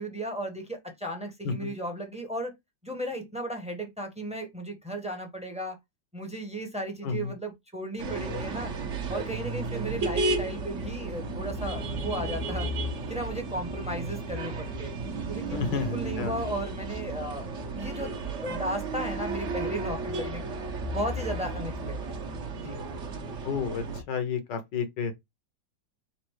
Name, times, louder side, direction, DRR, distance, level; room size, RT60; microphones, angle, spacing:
voice 1, 0.0-2.5 2.8-5.8 6.1-8.7 9.1-12.7 13.1-14.9 15.3-17.4 17.7-20.5 20.9-22.4 22.6-22.8, right 1 dB, 5° right, 0.8 m, -35 dB
voice 2, 1.4-1.8 7.0-7.3 15.5-16.3 23.4-25.1, left 5 dB, 70° left, 1.5 m, -31 dB
sound 1, 8.0-24.0, right 2 dB, 45° right, 1.1 m, -33 dB
4.3 x 2.6 x 4.6 m
omnidirectional pair, 2.1 m